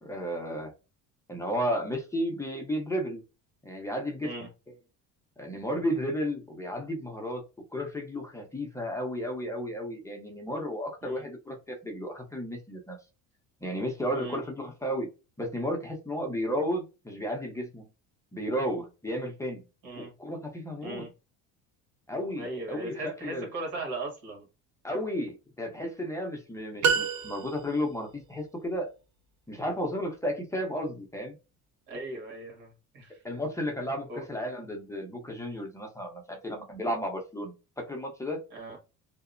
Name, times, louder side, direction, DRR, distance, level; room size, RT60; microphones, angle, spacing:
voice 1, 0.0-0.7 1.3-3.2 3.6-4.5 5.4-7.4 7.7-13.0 13.6-15.1 15.4-17.8 18.3-19.6 20.0-21.1 22.1-23.5 24.8-28.9 29.5-31.4 33.2-38.4, equal, 10° left, 0.5 m, -33 dB
voice 2, 22.4-24.4 31.9-33.2 34.1-34.2 38.5-38.8, right 2 dB, 80° right, 1.5 m, -38 dB
sound 1, 26.8-28.0, right 6 dB, 55° right, 0.5 m, -27 dB
2.8 x 2.0 x 2.4 m
cardioid pair, 120°, 34 cm